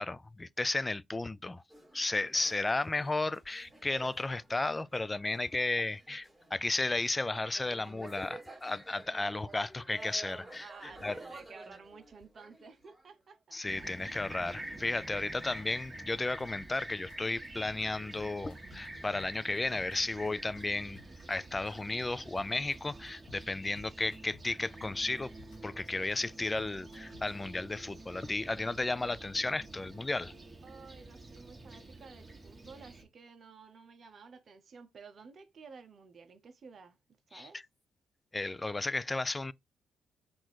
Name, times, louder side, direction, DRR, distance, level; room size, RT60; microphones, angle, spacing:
voice 1, 0.0-1.6 1.9-11.2 13.5-21.0 21.3-25.3 25.6-30.3 37.3-37.5 38.3-39.5, left 2 dB, 25° left, 0.4 m, -34 dB
sound 1, 1.7-6.7 7.2-13.2, right 2 dB, 5° right, 1.9 m, -52 dB
voice 2, 10.6-14.1 30.6-37.0 37.3-37.6, right 5 dB, 55° right, 0.7 m, -53 dB
Fixed-wing aircraft airplane, 13.7-33.0, right 1 dB, 25° right, 1.6 m, -48 dB
sound 2, 16.4-16.8 17.1-17.2 17.4-17.8 18.1-18.9 19.2-20.0 20.2-20.6 20.9-22.4 22.7-22.8 23.1-23.4 23.8-24.5 24.8-25.6 25.9-27.4, left 4 dB, 85° left, 0.8 m, -55 dB
3.9 x 2.5 x 4.6 m
supercardioid pair, 50°, 0 cm